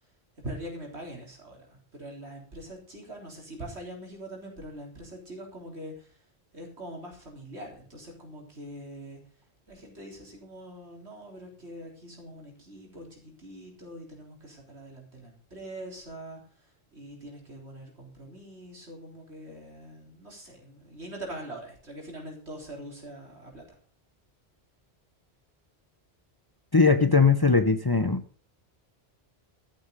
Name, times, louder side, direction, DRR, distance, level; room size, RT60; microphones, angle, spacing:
voice 1, 0.4-6.2 6.5-9.4 9.7-23.8, right 1 dB, 85° right, 0 dB, 4.0 m, -43 dB
voice 2, 26.7-28.2, left 4 dB, 25° left, 9 dB, 0.8 m, -20 dB
13.0 x 8.7 x 5.2 m, 0.42 s
omnidirectional pair, 1.1 m